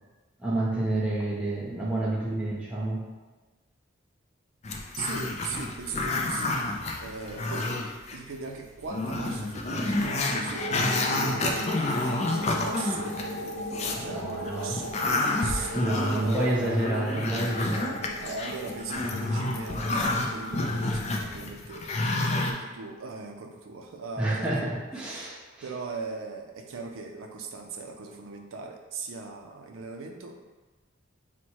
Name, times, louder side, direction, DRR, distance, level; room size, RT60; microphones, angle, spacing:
voice 1, 0.4-3.0 13.8-14.9 15.5-18.0 24.2-25.4, right 1 dB, 5° right, -6 dB, 0.7 m, -29 dB
Growling, 4.6-8.2 8.5-8.6 8.9-14.0 14.5-22.5, left 2 dB, 30° left, 0.3 m, -29 dB
voice 2, 4.9-7.7 8.1-17.1 18.2-24.8 25.1-25.3 25.6-30.3, right 4 dB, 80° right, 3 dB, 0.4 m, -39 dB
sound 1, 10.6-21.7, left 1 dB, 85° left, 0.6 m, -38 dB
4.2 x 2.1 x 4.5 m, 1.2 s
head